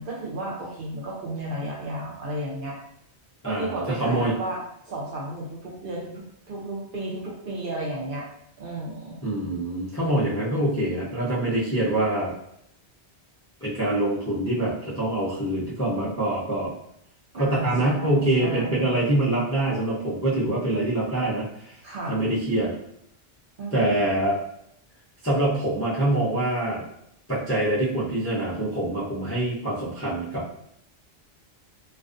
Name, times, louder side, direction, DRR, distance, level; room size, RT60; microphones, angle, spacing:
voice 1, 0.0-2.8 3.4-4.6 4.8-8.3 8.6-9.2 17.3-18.9 21.8-22.2 23.6-24.2, right 1 dB, 55° right, -3 dB, 0.7 m, -33 dB
voice 2, 3.4-4.3 9.2-12.3 13.6-16.7 17.3-21.5 22.1-22.7 23.7-24.4 25.2-26.8 27.3-30.4, right 1 dB, 20° left, -9 dB, 0.4 m, -25 dB
2.3 x 2.3 x 2.5 m, 0.75 s
omnidirectional pair, 1.2 m